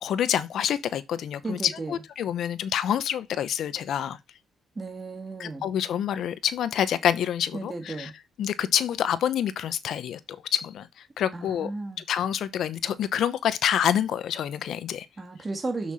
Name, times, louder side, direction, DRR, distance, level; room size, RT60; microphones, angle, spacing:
voice 1, 0.0-4.2 5.4-8.1 8.4-10.9 11.2-11.7 12.1-15.1, left 9 dB, 70° left, 0.9 m, -27 dB
voice 2, 1.4-2.0 4.8-5.7 7.5-8.1 11.3-12.0 15.2-15.9, right 3 dB, 25° right, 2.0 m, -34 dB
6.3 x 5.7 x 4.2 m
cardioid pair, 90°, 0 cm